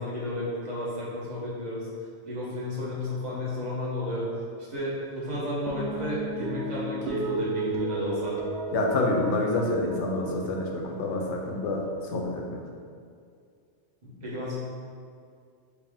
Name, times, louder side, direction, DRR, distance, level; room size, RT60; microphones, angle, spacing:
voice 1, 0.0-1.9 2.2-4.3 4.7-8.4 14.0-14.6, left 1 dB, 40° right, -7 dB, 1.0 m, -32 dB
sound 1, 5.7-12.2, right 3 dB, 75° right, 0.9 m, -34 dB
voice 2, 8.7-12.6, left 2 dB, 75° left, 0 dB, 0.9 m, -27 dB
4.8 x 2.1 x 3.4 m, 2.3 s
omnidirectional pair, 1.2 m